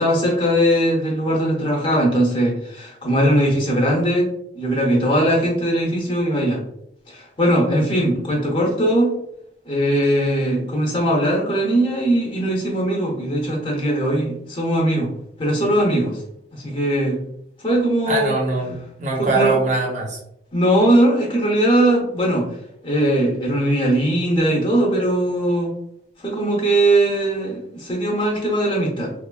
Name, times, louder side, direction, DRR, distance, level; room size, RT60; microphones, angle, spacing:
voice 1, 0.0-4.3 4.5-6.6 7.1-9.1 9.7-15.1 15.4-16.2 16.5-17.2 17.6-18.4 19.2-19.6 20.5-22.5 22.8-25.7 26.2-29.1, right 1 dB, 30° left, -2 dB, 0.6 m, -20 dB
voice 2, 18.1-20.2, right 2 dB, 40° right, 0 dB, 0.7 m, -22 dB
3.1 x 2.3 x 2.2 m, 0.75 s
head